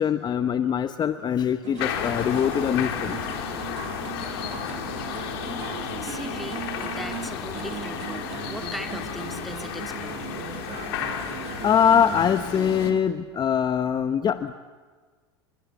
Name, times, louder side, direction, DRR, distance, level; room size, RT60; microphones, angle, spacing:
voice 1, 0.0-3.2 11.3-14.5, left 8 dB, 30° left, 11 dB, 1.1 m, -23 dB
sound 1, 1.6-13.0, right 11 dB, 45° right, 2.3 m, -38 dB
sound 2, 1.8-12.9, left 9 dB, 65° left, 3.7 m, -33 dB
voice 2, 5.4-10.3, equal, ahead, 6 dB, 2.7 m, -39 dB
29.5 x 22.5 x 8.2 m, 1.4 s
hypercardioid pair, 90°, 14 cm